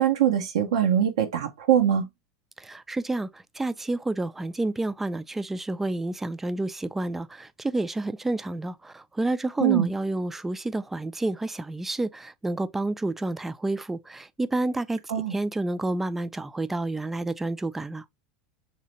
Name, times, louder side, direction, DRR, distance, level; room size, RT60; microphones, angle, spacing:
voice 1, 0.0-2.1 9.6-9.9 15.1-15.3, right 10 dB, 85° right, 0.7 m, -22 dB
voice 2, 2.6-15.0 15.3-18.0, right 2 dB, 10° right, 0.3 m, -29 dB
3.3 x 2.7 x 2.9 m
supercardioid pair, 120°, 3 cm